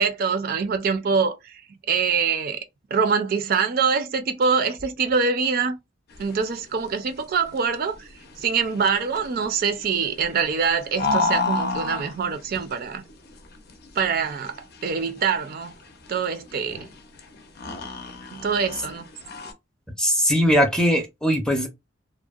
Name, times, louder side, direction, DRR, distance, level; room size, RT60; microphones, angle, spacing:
voice 1, 0.0-1.6 1.9-2.6 2.9-5.8 6.2-8.1 8.4-13.0 13.9-15.7 16.1-16.9 18.3-19.1, right 5 dB, 50° right, 0.4 m, -24 dB
sound 1, 6.1-19.5, left 3 dB, 55° left, 0.5 m, -32 dB
voice 2, 20.0-21.7, equal, 5° left, 0.5 m, -20 dB
2.6 x 2.0 x 2.3 m
head